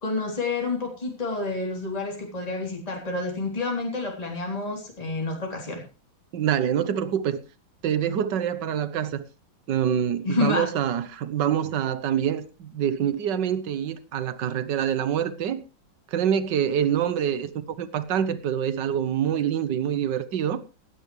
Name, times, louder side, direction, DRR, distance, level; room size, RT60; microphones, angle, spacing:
voice 1, 0.0-5.8 10.2-10.7, left 3 dB, 20° left, 3.6 m, -29 dB
voice 2, 6.3-7.4 7.8-9.2 9.7-15.6 16.1-20.6, right 9 dB, 65° right, 1.7 m, -26 dB
16.5 x 12.5 x 3.3 m
omnidirectional pair, 2.2 m